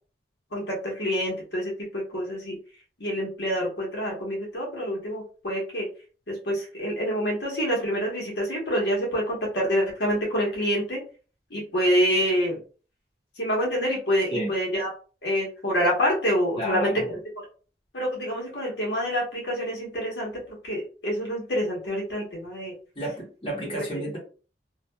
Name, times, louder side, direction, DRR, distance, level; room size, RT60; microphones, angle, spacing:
voice 1, 0.5-2.6 3.0-5.9 6.3-11.0 11.5-12.6 13.3-14.9 15.2-17.5 17.9-22.7, equal, 70° left, -3 dB, 1.2 m, -27 dB
voice 2, 16.6-17.1 23.0-24.2, equal, 30° left, -5 dB, 1.0 m, -31 dB
2.7 x 2.4 x 2.2 m, 0.38 s
head